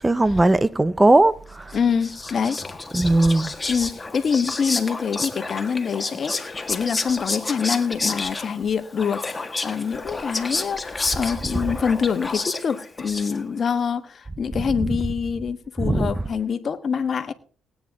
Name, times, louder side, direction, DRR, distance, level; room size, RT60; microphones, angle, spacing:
voice 1, 0.0-1.8 2.9-3.5 15.8-16.1, right 2 dB, 15° right, 0.6 m, -18 dB
voice 2, 1.7-2.6 3.7-17.3, left 6 dB, 50° left, 1.3 m, -25 dB
Whispering, 1.7-13.7, left 3 dB, 20° left, 1.6 m, -30 dB
19.5 x 9.5 x 3.6 m
cardioid pair, 90°, 0 cm